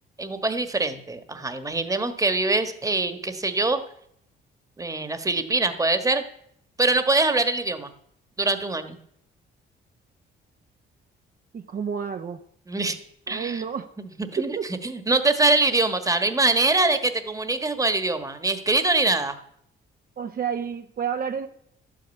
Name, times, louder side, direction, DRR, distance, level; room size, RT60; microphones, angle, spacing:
voice 1, 0.2-3.8 4.8-6.2 6.8-7.9 8.4-9.0 12.7-13.0 13.3-13.6 14.0-14.6 14.8-19.4, right 2 dB, 15° right, 9 dB, 1.4 m, -23 dB
voice 2, 11.5-12.4 13.3-13.9 14.4-14.7 20.2-21.5, right 7 dB, 45° right, 6 dB, 1.0 m, -30 dB
11.5 x 8.7 x 8.2 m, 0.69 s
cardioid pair, 90°, 20 cm